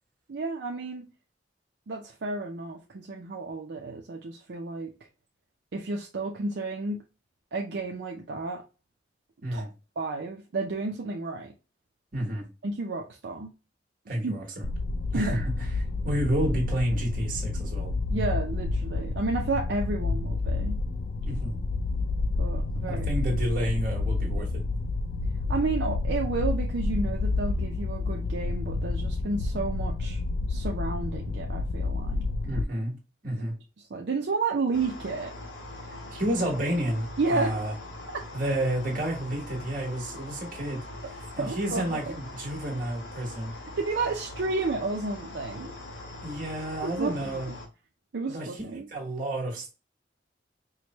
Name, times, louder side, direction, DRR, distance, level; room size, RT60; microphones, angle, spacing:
voice 1, 0.3-1.1 1.9-4.9 5.7-7.0 7.5-8.6 9.5-9.7 10.0-11.5 12.6-13.5 14.1-14.3 15.1-15.4 18.1-20.8 22.4-23.1 25.5-30.2 30.5-32.3 33.9-35.3 37.2-37.6 41.4-42.2 43.8-45.7 46.8-47.5 48.1-48.9, right 3 dB, 70° right, 0.5 m, -31 dB
voice 2, 12.1-12.4 14.1-14.6 15.1-15.5 16.0-17.9 21.2-21.6 22.9-24.6 32.5-32.9 33.2-33.5 36.1-37.7 38.3-43.5 46.2-47.5 48.3-48.5 48.9-49.7, right 1 dB, 50° right, 1.4 m, -30 dB
sound 1, 14.6-32.6, left 3 dB, 55° left, 0.3 m, -29 dB
sound 2, 34.7-47.7, left 2 dB, 85° left, 1.1 m, -42 dB
4.7 x 2.1 x 2.9 m
head